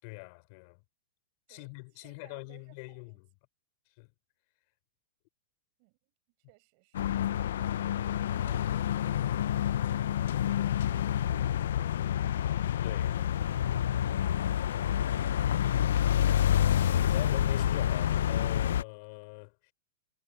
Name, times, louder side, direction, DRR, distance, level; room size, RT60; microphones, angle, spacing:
voice 1, 0.0-0.8 1.5-3.3 4.0-4.1 12.8-13.2 13.5-13.6 16.7-19.7, left 32 dB, 45° left, 5.2 m, -44 dB
voice 2, 1.5-3.2 5.8-6.0 6.5-7.4 8.3-12.3 13.1-13.6 14.0-16.4, right 31 dB, 45° right, 4.7 m, -61 dB
sound 1, 6.9-18.8, left 10 dB, 75° left, 0.4 m, -28 dB
hypercardioid pair, 145°, 0 cm